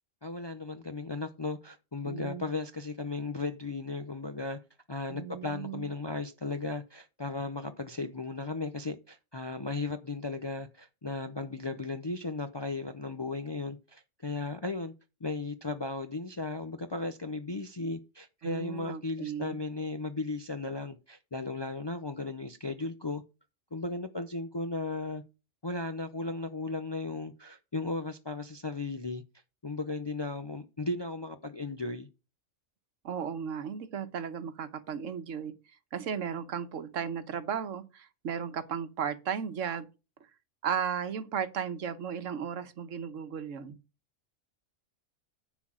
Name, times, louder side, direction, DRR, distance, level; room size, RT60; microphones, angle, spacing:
voice 1, 0.2-4.6 4.9-14.9 15.2-23.2 23.7-25.2 25.6-29.2 29.6-32.1, left 3 dB, 35° left, 0.4 m, -36 dB
voice 2, 2.0-2.5 5.1-5.9 18.4-19.6 33.0-35.5 35.9-39.9 40.6-43.8, right 7 dB, 80° right, 1.3 m, -35 dB
10.0 x 4.0 x 7.4 m
omnidirectional pair, 1.3 m